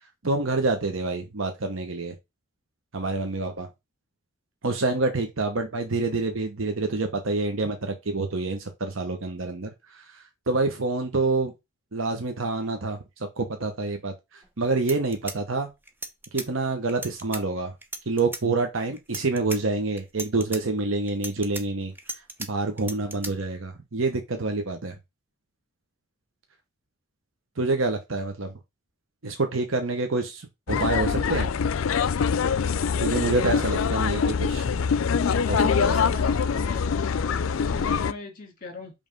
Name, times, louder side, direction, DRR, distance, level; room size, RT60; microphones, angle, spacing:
voice 1, 0.2-2.1 2.9-3.7 4.6-9.7 10.5-11.5 11.9-13.0 13.4-14.1 14.6-15.7 16.3-17.7 18.1-21.9 22.5-25.0 27.6-28.5 29.2-31.5 33.0-34.7 35.5-35.9, right 3 dB, 75° right, 1.0 m, -27 dB
sound 1, 14.4-14.5 14.8-16.5 16.9-17.4 17.8-18.4 19.0-19.6 20.0-20.6 21.1-22.5 22.8-23.3, right 2 dB, 10° right, 0.8 m, -36 dB
sound 2, 30.7-38.1, left 6 dB, 85° left, 0.4 m, -24 dB
voice 2, 35.4-38.9, left 3 dB, 45° left, 2.0 m, -38 dB
5.4 x 3.4 x 5.2 m
head